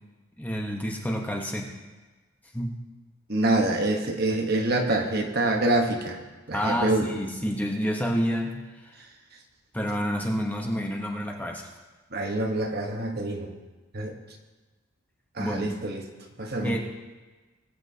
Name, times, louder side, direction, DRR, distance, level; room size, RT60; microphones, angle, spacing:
voice 1, 0.4-1.7 2.5-2.7 6.5-8.6 9.7-11.7 15.4-15.7 16.6-16.8, equal, 10° left, 0 dB, 1.0 m, -28 dB
voice 2, 3.3-6.2 6.5-7.1 12.1-13.5 13.9-14.2 15.4-16.0 16.4-16.8, right 2 dB, 45° right, 3 dB, 1.2 m, -26 dB
20.5 x 8.7 x 2.8 m, 1.3 s
head